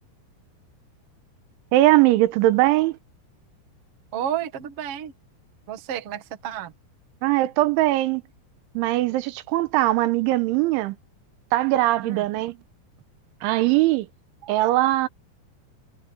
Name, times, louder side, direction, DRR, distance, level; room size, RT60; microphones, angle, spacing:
voice 1, 1.7-3.0 7.2-8.2 8.7-11.0 11.5-12.6 13.4-14.1 14.5-15.1, right 17 dB, 80° right, 3.3 m, -20 dB
voice 2, 4.1-5.1 5.7-6.7 12.0-12.2, right 10 dB, 60° right, 1.6 m, -31 dB
omnidirectional pair, 5.5 m